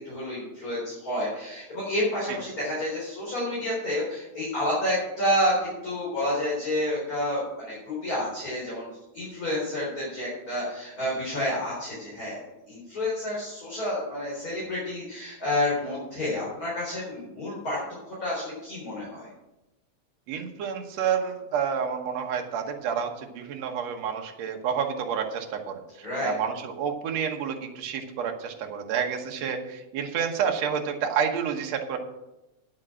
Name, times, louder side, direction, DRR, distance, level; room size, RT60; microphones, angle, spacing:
voice 1, 0.0-17.8 18.0-19.3 26.0-26.3, left 1 dB, 30° left, -7 dB, 4.4 m, -29 dB
voice 2, 20.3-32.0, right 7 dB, 65° right, 4 dB, 2.3 m, -29 dB
9.8 x 7.4 x 7.5 m, 0.97 s
omnidirectional pair, 3.4 m